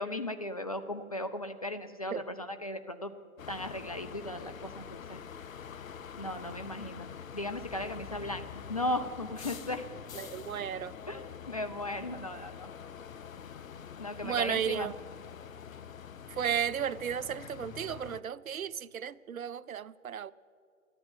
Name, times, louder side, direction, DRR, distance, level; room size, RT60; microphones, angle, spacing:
voice 1, 0.0-3.1 3.5-5.2 6.2-9.9 11.1-12.7 14.0-14.9, left 1 dB, 30° left, 0.4 m, -37 dB
sound 1, 3.4-18.2, left 8 dB, 70° left, 0.7 m, -46 dB
voice 2, 10.2-10.9 14.2-14.9 16.3-20.3, right 8 dB, 75° right, 0.6 m, -34 dB
13.5 x 9.7 x 9.1 m
figure-of-eight pair, 130°, 42 cm